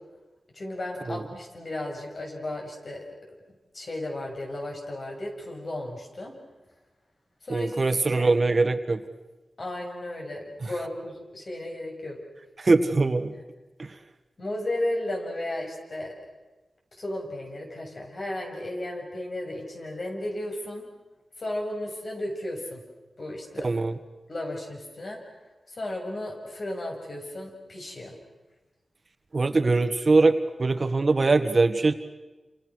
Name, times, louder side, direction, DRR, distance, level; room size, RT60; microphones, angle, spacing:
voice 1, 0.5-3.0 3.7-6.3 7.4-7.8 8.2-8.3 9.6-12.2 13.3-13.4 14.4-16.2 17.0-20.8 21.4-22.8 23.2-23.7 24.3-25.2 25.7-28.1, left 1 dB, 50° left, 1 dB, 7.4 m, -34 dB
voice 2, 7.5-9.0 12.6-13.3 13.8-13.9 23.6-24.0 29.3-31.9, right 3 dB, 45° right, 9 dB, 1.6 m, -22 dB
30.0 x 28.0 x 6.4 m, 1.1 s
wide cardioid pair, 90°, 0 cm